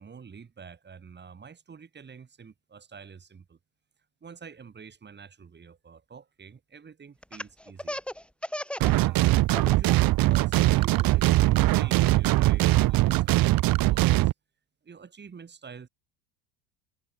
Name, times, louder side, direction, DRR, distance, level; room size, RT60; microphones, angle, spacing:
voice 1, 0.0-3.6 4.2-8.0 8.8-14.3 14.8-15.9, right 6 dB, 25° right, 7.7 m, -47 dB
Laughter, 7.2-9.0 9.3-9.9 10.3-12.1, left 1 dB, ahead, 3.1 m, -36 dB
sound 1, 8.8-14.3, right 17 dB, 50° right, 1.8 m, -21 dB
supercardioid pair, 115°, 45 cm